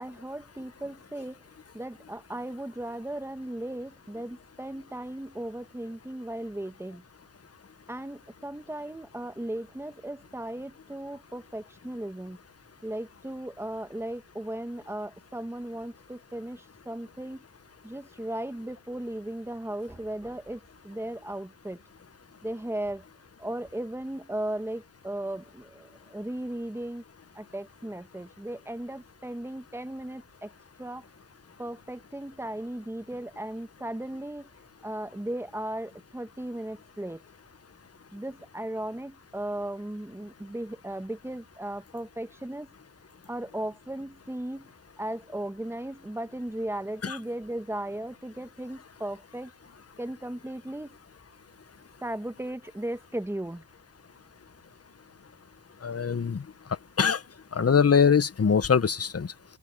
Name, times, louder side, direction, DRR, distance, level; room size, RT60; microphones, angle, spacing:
voice 1, 0.0-1.4 1.7-7.0 7.9-12.4 12.8-17.4 17.8-21.8 22.4-23.0 23.4-27.0 27.3-30.5 30.8-31.0 31.6-34.5 34.8-37.2 38.1-42.7 43.3-44.7 45.0-49.5 50.0-51.0 52.0-53.6, right 1 dB, 5° right, 1.6 m, -36 dB
voice 2, 55.8-56.4 57.0-57.2 57.5-59.3, left 6 dB, 35° left, 1.4 m, -23 dB
supercardioid pair, 55°, 41 cm